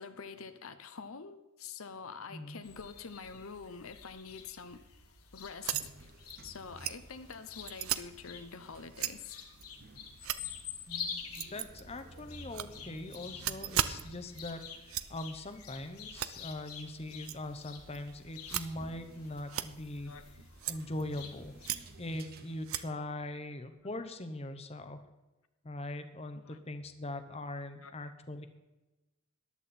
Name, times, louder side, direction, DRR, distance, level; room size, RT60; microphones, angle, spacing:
voice 1, 0.0-4.8 5.3-6.1 6.4-9.4 19.5-19.6 20.1-20.5 26.3-26.6 27.8-28.0, left 5 dB, 70° left, 10 dB, 0.8 m, -46 dB
voice 2, 2.3-2.6 10.9-14.6 14.9-20.1 20.7-21.6 22.0-25.0 25.6-28.5, left 1 dB, 30° left, 9 dB, 0.9 m, -41 dB
sound 1, 2.6-22.0, left 7 dB, 90° left, 1.7 m, -48 dB
Bats at Hampstead Ponds, 5.6-5.9 6.3-6.4 6.8-6.9 7.3-7.4 7.6-8.0 8.9-9.1 9.5-9.6 10.2-10.4 11.3-12.2 12.5-14.0 14.3-14.4 14.9-15.0 15.5-15.7 16.1-16.3 17.2-17.4 17.9-18.0 18.4-18.6 19.5-20.1 20.6-21.2 21.6-21.9 22.6-22.8, right 11 dB, 70° right, 0.6 m, -35 dB
sound 2, 5.7-22.8, right 2 dB, 45° right, 0.9 m, -56 dB
14.5 x 11.0 x 4.3 m, 1.1 s
head